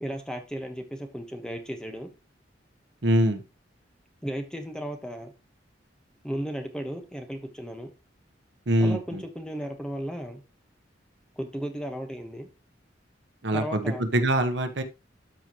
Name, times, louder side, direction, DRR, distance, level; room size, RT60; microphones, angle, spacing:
voice 1, 0.0-2.1 4.2-5.3 6.2-7.9 8.8-10.4 11.4-12.5 13.5-14.1, equal, 5° left, 1.2 m, -35 dB
voice 2, 3.0-3.4 8.7-9.2 13.4-14.8, right 1 dB, 70° right, 1.0 m, -24 dB
12.5 x 4.8 x 3.0 m
head